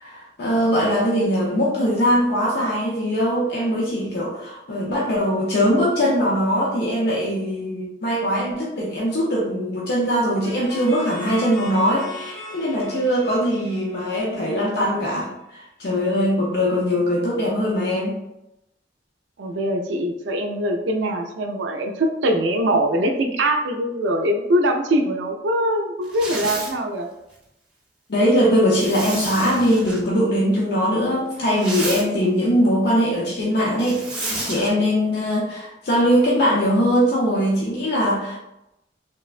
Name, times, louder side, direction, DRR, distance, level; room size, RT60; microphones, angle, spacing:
voice 1, 0.0-18.2 28.1-38.4, equal, 60° left, -4 dB, 0.5 m, -21 dB
sound 1, 10.4-15.0, left 2 dB, 80° left, 1.2 m, -39 dB
voice 2, 19.4-27.1, right 1 dB, 75° right, 4 dB, 0.4 m, -22 dB
Zipper (clothing), 26.0-26.7 28.7-30.0 31.3-32.0 33.8-34.7, right 2 dB, 5° right, 0.6 m, -30 dB
3.3 x 2.1 x 2.4 m, 0.88 s
head